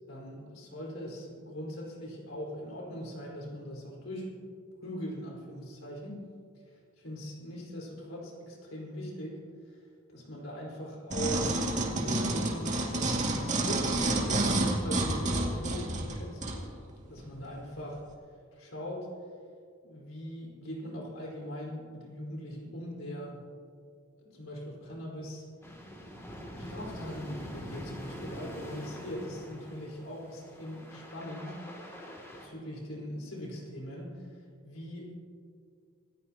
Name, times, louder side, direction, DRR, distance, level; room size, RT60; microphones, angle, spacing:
voice 1, 0.1-4.3 4.8-6.3 6.7-9.8 10.1-16.4 16.9-18.0 18.5-19.1 19.8-23.4 24.2-25.4 26.5-31.6 32.4-35.1, equal, 70° left, -2 dB, 4.9 m, -41 dB
sound 1, 11.1-16.6 17.2-17.3, right 2 dB, 35° right, 2.3 m, -29 dB
sound 2, 25.6-32.5, equal, 15° left, 2.7 m, -44 dB
26.0 x 15.5 x 3.0 m, 2.2 s
head